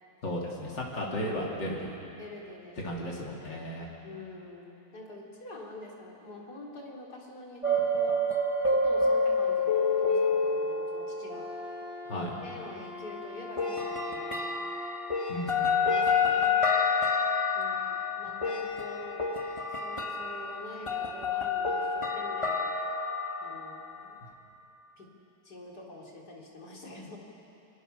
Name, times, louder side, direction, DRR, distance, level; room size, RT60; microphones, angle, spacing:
voice 1, 0.2-2.0 2.8-3.9 12.1-12.3 15.3-15.7, equal, 80° left, -3 dB, 3.9 m, -34 dB
voice 2, 1.0-1.3 2.2-2.8 3.3-3.6 4.0-8.3 8.7-11.5 12.1-14.5 15.3-16.6 17.5-19.3 19.7-22.6 23.4-24.2 25.0-25.1 25.4-27.2, left 2 dB, 60° left, -2 dB, 4.3 m, -46 dB
sound 1, 7.6-11.9 13.6-24.1, left 3 dB, 15° left, 1.9 m, -28 dB
Wind instrument woodwind instrument, 11.2-15.3, left 1 dB, ahead, 2.6 m, -42 dB
28.5 x 24.5 x 6.9 m, 2.9 s
omnidirectional pair, 1.9 m